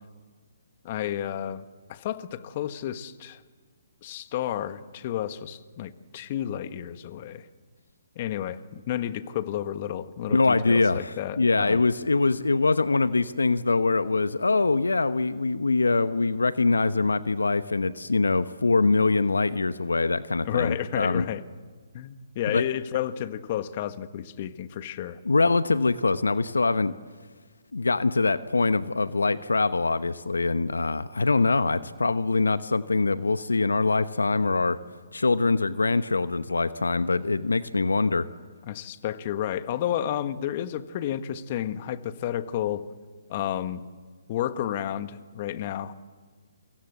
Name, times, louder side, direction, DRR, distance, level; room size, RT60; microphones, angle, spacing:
voice 1, 0.8-1.6 1.9-3.4 4.0-7.5 8.1-11.8 20.4-21.4 21.9-25.2 38.6-42.8 43.3-43.8 44.3-45.9, left 11 dB, 40° left, 12 dB, 1.4 m, -31 dB
voice 2, 10.3-21.2 22.5-22.6 25.2-26.9 27.7-34.8 35.1-38.3, left 3 dB, 85° left, 13 dB, 0.9 m, -23 dB
28.5 x 25.0 x 8.2 m, 1.5 s
figure-of-eight pair, 135°, 0 cm